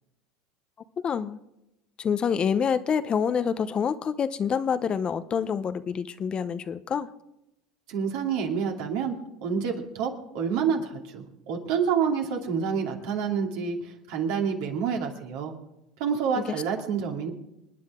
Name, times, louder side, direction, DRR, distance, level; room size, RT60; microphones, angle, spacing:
voice 1, 1.0-1.4 2.0-7.1, left 7 dB, 35° left, 13 dB, 0.8 m, -27 dB
voice 2, 7.9-15.5 16.0-17.3, right 6 dB, 70° right, 1 dB, 2.7 m, -28 dB
28.0 x 9.6 x 3.7 m, 0.90 s
hypercardioid pair, 85°, 3 cm